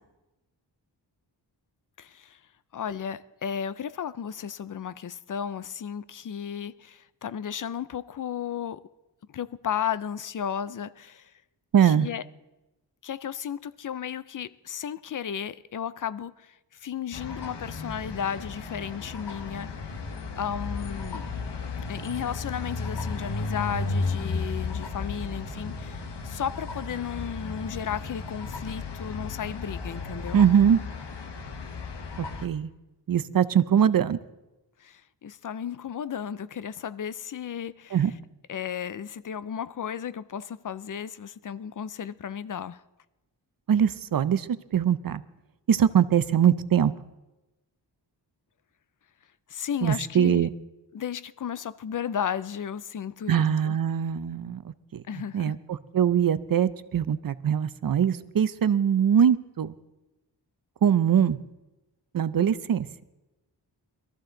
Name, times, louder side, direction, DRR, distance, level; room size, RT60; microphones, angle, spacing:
voice 1, 2.0-2.4 2.7-8.8 9.3-11.3 11.8-12.2 13.0-19.7 20.4-21.3 21.9-30.4 34.8-38.1 38.5-42.8 49.5-50.5 50.9-53.8 55.1-55.5, left 8 dB, 45° left, 0.5 m, -34 dB
voice 2, 11.7-12.1 30.3-30.8 32.2-32.7 33.1-34.2 37.9-38.1 43.7-44.5 44.7-45.2 45.7-46.9 49.8-50.5 53.3-55.0 55.3-55.6 55.9-59.7 60.8-61.4 62.1-62.9, right 8 dB, 50° right, 0.6 m, -22 dB
sound 1, 17.1-32.5, left 4 dB, 70° left, 1.4 m, -34 dB
22.0 x 14.0 x 3.9 m
wide cardioid pair, 135°, 43 cm